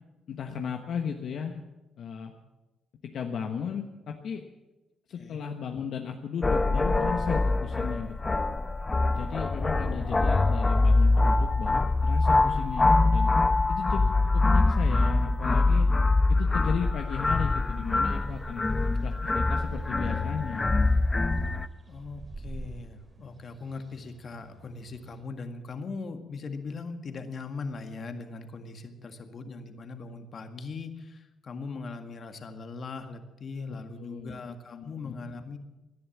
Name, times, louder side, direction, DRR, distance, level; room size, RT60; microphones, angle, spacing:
voice 1, 0.3-1.6 2.0-2.3 3.1-4.4 5.1-8.2 9.1-13.3 13.7-15.9 16.3-18.6 19.0-20.7 34.0-34.4 34.7-35.1, left 7 dB, 65° left, 3 dB, 1.2 m, -35 dB
sound 1, 6.4-21.7, left 2 dB, 25° left, 0.8 m, -24 dB
sound 2, 17.0-25.2, right 2 dB, 30° right, 2.9 m, -48 dB
voice 2, 21.9-35.6, left 4 dB, 50° left, 6 dB, 1.9 m, -40 dB
18.0 x 11.0 x 7.3 m, 1.1 s
cardioid pair, 90°, 0 cm